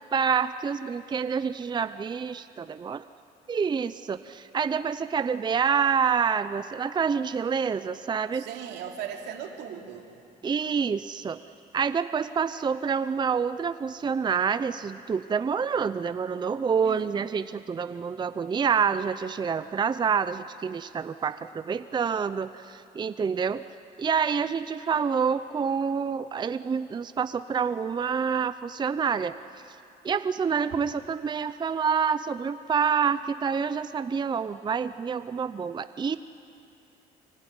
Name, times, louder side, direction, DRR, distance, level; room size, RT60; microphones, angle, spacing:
voice 1, 0.1-3.0 3.5-8.4 10.4-11.4 11.7-23.6 24.0-29.4 29.7-29.8 30.0-36.2, right 6 dB, 25° right, 12 dB, 0.6 m, -27 dB
voice 2, 8.3-10.1 16.8-17.1, right 8 dB, 85° right, 2 dB, 2.9 m, -38 dB
25.0 x 23.5 x 9.8 m, 2.6 s
cardioid pair, 110°, 17 cm